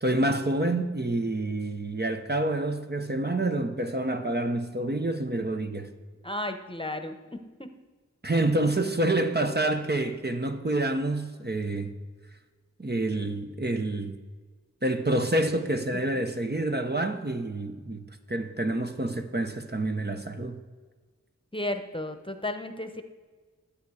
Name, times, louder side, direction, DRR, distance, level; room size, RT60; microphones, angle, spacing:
voice 1, 0.0-5.9 8.2-11.9 12.8-14.2 14.8-20.6, right 2 dB, 35° right, 0.8 m, -28 dB
voice 2, 6.2-7.7 8.8-9.1 21.5-23.0, left 1 dB, 15° left, 1.0 m, -34 dB
12.0 x 8.4 x 4.8 m
wide cardioid pair, 40°, 30 cm